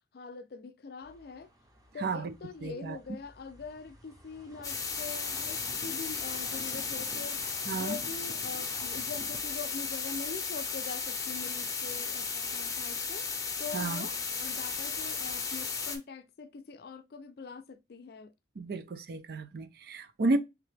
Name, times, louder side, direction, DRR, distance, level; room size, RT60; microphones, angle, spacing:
voice 1, 0.1-1.5 1.9-7.4 7.7-13.3 13.6-18.3, left 5 dB, 60° left, 0.4 m, -43 dB
sound 1, 1.0-9.4, equal, 20° right, 0.8 m, -52 dB
voice 2, 2.0-2.3 2.6-3.0 7.7-8.0 13.7-14.1 18.6-20.4, right 3 dB, 60° right, 0.5 m, -32 dB
sound 2, 4.6-16.0, left 5 dB, 20° left, 0.7 m, -35 dB
3.5 x 2.9 x 3.2 m
head